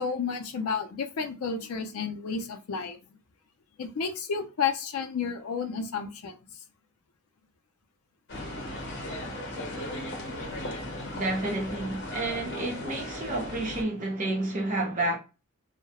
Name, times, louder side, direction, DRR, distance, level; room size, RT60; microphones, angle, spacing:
voice 1, 0.0-3.0 3.8-6.4, left 6 dB, 90° left, 0.4 m, -31 dB
sound 1, 8.3-13.8, left 1 dB, 55° left, 0.8 m, -37 dB
voice 2, 11.1-15.2, right 2 dB, 35° right, 0.8 m, -30 dB
2.2 x 2.1 x 2.8 m
head